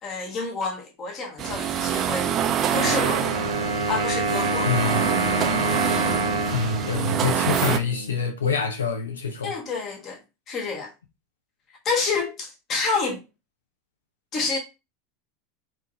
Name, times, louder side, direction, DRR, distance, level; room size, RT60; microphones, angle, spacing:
voice 1, 0.0-3.4 3.9-5.1 9.4-10.2 10.5-10.9 11.8-13.2 14.3-14.6, left 4 dB, 40° left, 1.3 m, -29 dB
sound 1, 1.4-7.8, right 9 dB, 40° right, 0.5 m, -26 dB
Wind instrument woodwind instrument, 2.7-8.3, right 2 dB, 70° right, 1.0 m, -27 dB
voice 2, 4.6-5.0 6.5-9.5, left 5 dB, 80° left, 0.6 m, -26 dB
3.6 x 2.7 x 2.6 m
figure-of-eight pair, 85°, 0 cm